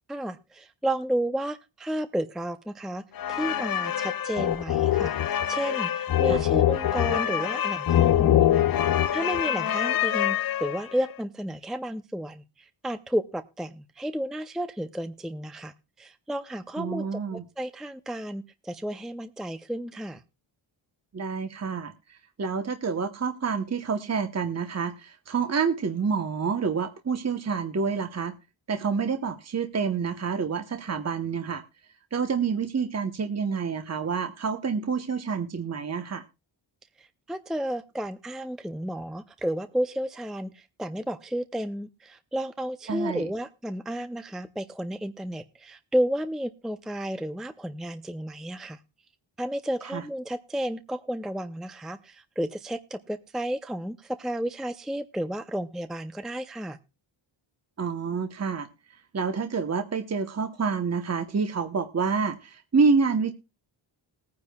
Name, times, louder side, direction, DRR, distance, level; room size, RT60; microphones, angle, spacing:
voice 1, 0.1-20.2 37.0-48.8 49.4-56.8, equal, ahead, 11 dB, 0.5 m, -32 dB
sound 1, 3.2-11.0, left 11 dB, 50° left, 0.5 m, -24 dB
voice 2, 16.8-17.4 21.1-21.9 22.4-28.3 28.7-31.6 32.1-36.2 42.9-43.2 49.9-50.0 57.8-58.7 59.1-63.3, right 5 dB, 30° right, 8 dB, 1.0 m, -28 dB
20.0 x 9.7 x 2.3 m, 0.26 s
wide cardioid pair, 110°, 49 cm